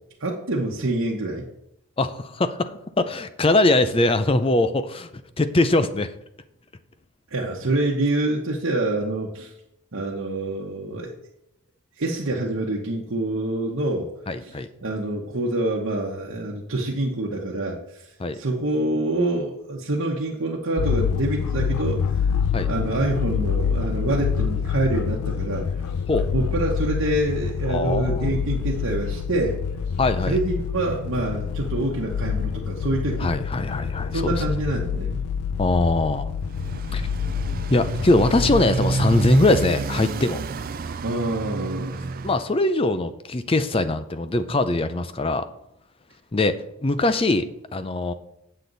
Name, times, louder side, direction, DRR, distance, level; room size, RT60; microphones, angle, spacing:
voice 1, 0.2-1.5 7.3-9.5 9.9-11.1 12.0-14.1 14.4-22.0 22.7-25.7 26.3-29.6 30.2-33.3 34.1-35.2 41.0-42.1, right 2 dB, 60° right, -4 dB, 1.1 m, -26 dB
voice 2, 2.0-5.1 5.4-6.1 14.3-14.7 18.2-18.4 22.5-22.7 26.1-26.3 27.7-28.5 30.0-30.4 33.2-34.4 35.6-36.3 36.9-37.1 37.7-40.4 42.2-45.5 46.3-48.1, left 2 dB, 25° left, 11 dB, 0.5 m, -22 dB
sound 1, 20.8-38.6, left 6 dB, 90° left, 0.4 m, -27 dB
Motorcycle, 36.4-42.4, right 3 dB, 40° right, 0.4 m, -29 dB
8.4 x 7.8 x 4.0 m, 0.79 s
head